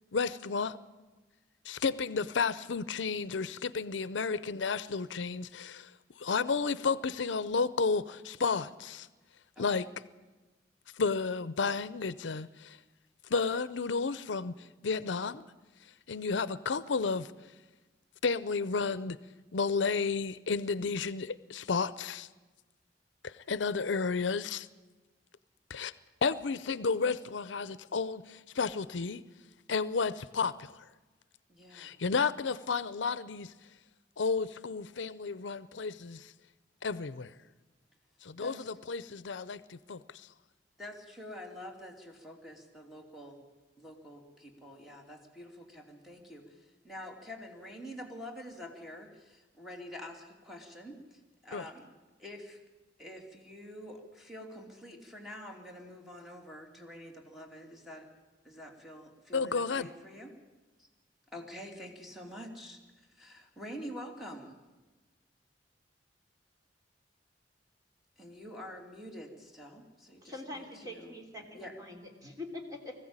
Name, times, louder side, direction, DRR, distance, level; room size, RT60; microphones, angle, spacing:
voice 1, 0.1-0.8 1.6-5.9 6.2-9.1 9.6-9.9 10.9-12.8 13.3-15.5 16.1-17.3 18.2-19.2 19.5-22.3 23.2-24.7 25.7-25.9 26.2-29.2 29.7-30.8 31.7-33.5 34.2-36.3 36.8-37.3 38.2-40.3 51.5-51.6 59.3-59.9, left 4 dB, 85° left, 17 dB, 0.6 m, -32 dB
voice 2, 9.6-9.9 31.5-31.9 38.4-38.7 40.8-43.4 43.8-51.9 52.2-52.6 53.0-58.1 58.4-60.3 60.8-60.9 61.3-64.5 68.2-71.2 71.5-71.7, equal, ahead, 1 dB, 2.8 m, -47 dB
voice 3, 70.2-72.9, left 2 dB, 20° right, 1 dB, 3.1 m, -44 dB
20.5 x 15.0 x 8.8 m, 1.2 s
head